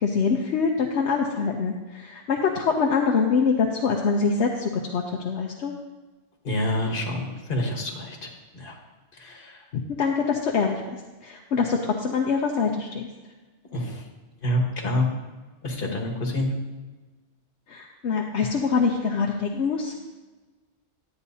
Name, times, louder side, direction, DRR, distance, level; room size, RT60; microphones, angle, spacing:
voice 1, 0.0-5.7 9.7-10.8 11.2-13.1 17.7-19.9, left 5 dB, 75° left, 0 dB, 1.0 m, -24 dB
voice 2, 6.4-8.7 9.1-9.6 13.7-14.0 14.4-15.1 15.6-16.5, left 1 dB, 50° left, 1 dB, 1.5 m, -27 dB
11.5 x 9.2 x 2.7 m, 1.3 s
omnidirectional pair, 1.2 m